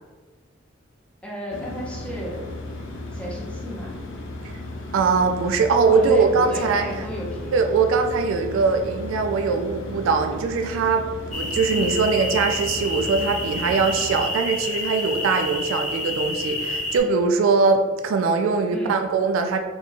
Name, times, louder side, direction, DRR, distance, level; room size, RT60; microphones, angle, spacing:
voice 1, 1.2-2.4 3.1-3.9 5.9-7.6 11.7-11.9 18.7-19.0, equal, 5° left, -4 dB, 0.7 m, -33 dB
sound 1, 1.5-14.2, left 2 dB, 65° left, 0.4 m, -35 dB
voice 2, 4.9-6.8 7.5-11.0 11.3-19.6, right 4 dB, 70° right, 6 dB, 0.3 m, -21 dB
sound 2, 11.3-17.0, left 2 dB, 40° left, 0.9 m, -29 dB
3.9 x 2.3 x 2.8 m, 1.4 s
head